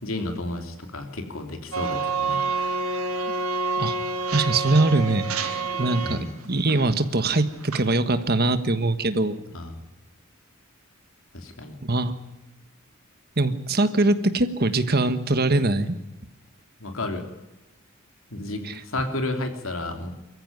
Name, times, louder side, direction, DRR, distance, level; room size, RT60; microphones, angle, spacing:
voice 1, 0.0-2.8 6.0-6.3 9.5-9.8 11.3-11.8 16.8-17.2 18.3-20.1, left 2 dB, 70° left, 5 dB, 3.1 m, -32 dB
sound 1, 1.7-6.2 6.6-6.9 7.2-7.8, right 4 dB, 85° right, 3.2 m, -28 dB
voice 2, 4.3-6.2 6.4-9.4 11.9-12.1 13.4-16.0 18.6-18.7, right 2 dB, 45° right, 11 dB, 1.4 m, -22 dB
24.0 x 14.5 x 9.7 m, 0.98 s
head